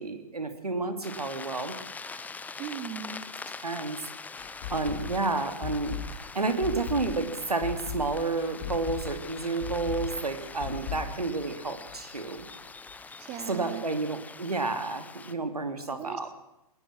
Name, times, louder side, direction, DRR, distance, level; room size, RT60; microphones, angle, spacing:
voice 1, 0.0-1.7 3.6-4.0 4.7-12.5 13.5-16.3, right 3 dB, 85° right, 8 dB, 2.7 m, -30 dB
sound 1, 1.0-15.3, left 4 dB, 10° left, 0.8 m, -44 dB
voice 2, 2.6-3.2 13.2-13.8 15.9-16.3, right 9 dB, 30° right, 11 dB, 1.7 m, -38 dB
sound 2, 4.4-12.1 12.4-12.5 12.9-13.0, left 7 dB, 45° left, 2.2 m, -38 dB
21.5 x 19.5 x 6.1 m, 0.89 s
figure-of-eight pair, 110°, 19 cm